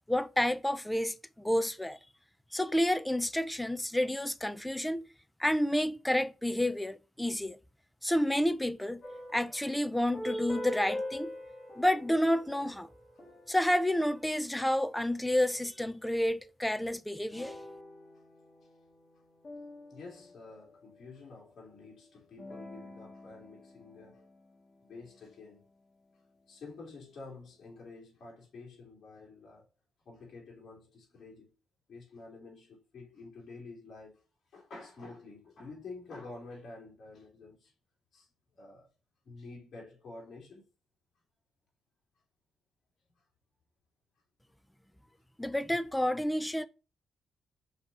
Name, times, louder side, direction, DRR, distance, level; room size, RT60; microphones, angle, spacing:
voice 1, 0.1-2.0 2.5-5.0 5.4-7.6 8.0-9.0 9.3-11.3 11.8-12.9 13.5-17.6 45.4-46.7, left 1 dB, 5° left, 0.6 m, -30 dB
sound 1, 9.0-15.0 17.3-21.1 22.4-25.1, equal, 45° left, 2.2 m, -44 dB
voice 2, 19.9-24.3 24.8-25.6 26.5-29.7 30.0-31.5 31.9-34.2 34.5-37.7 38.1-38.3 38.6-38.9 39.2-40.6, left 3 dB, 60° left, 3.0 m, -49 dB
5.7 x 4.2 x 4.8 m
cardioid pair, 75°, 0 cm